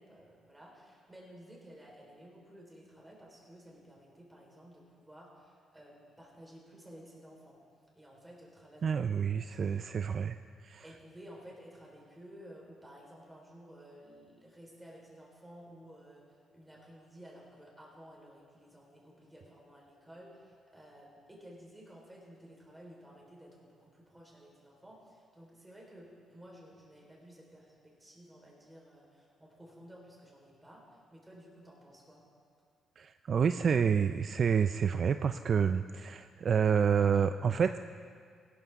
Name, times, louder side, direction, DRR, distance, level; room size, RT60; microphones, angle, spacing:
voice 1, 0.0-7.6 7.9-9.0 9.4-9.8 10.8-32.2, equal, 10° right, -3 dB, 3.9 m, -54 dB
voice 2, 8.8-10.8 33.0-37.8, right 7 dB, 50° right, 10 dB, 0.3 m, -28 dB
16.5 x 12.5 x 3.6 m, 2.1 s
cardioid pair, 90°, 0 cm